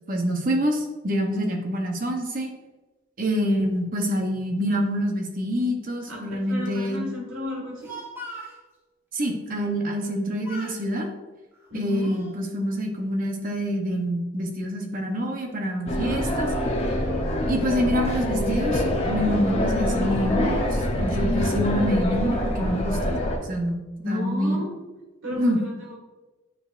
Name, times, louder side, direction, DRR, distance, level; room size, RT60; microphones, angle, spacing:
voice 1, 0.1-2.5 3.2-7.0 9.1-11.1 11.7-16.5 17.5-23.1 23.5-23.8 24.1-24.6 25.4-25.6, equal, 40° right, 3 dB, 0.9 m, -26 dB
voice 2, 6.5-7.9 11.7-12.1 24.0-24.7 25.2-26.0, left 2 dB, 70° right, -2 dB, 1.8 m, -32 dB
Speech, 7.6-8.6 9.9-10.2 10.4-10.8 11.5-12.4, right 1 dB, 10° right, 1.2 m, -40 dB
sound 1, 15.9-23.4, left 1 dB, 30° left, 0.9 m, -25 dB
8.6 x 5.0 x 2.5 m, 1.1 s
head